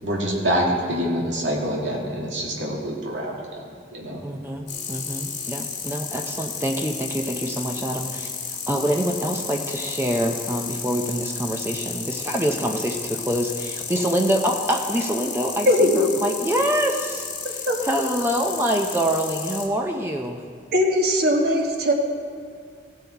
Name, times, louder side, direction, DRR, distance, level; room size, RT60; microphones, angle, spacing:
voice 1, 0.0-3.6 3.9-4.2, equal, 85° right, -3 dB, 2.2 m, -26 dB
voice 2, 4.2-20.4, equal, 15° right, 2 dB, 0.5 m, -26 dB
sound 1, 4.7-19.7, left 6 dB, 75° left, 1.5 m, -33 dB
voice 3, 15.7-16.1 16.5-16.6 17.7-17.8 20.7-21.9, left 1 dB, 55° right, 1 dB, 1.4 m, -19 dB
16.5 x 5.5 x 4.5 m, 2.3 s
head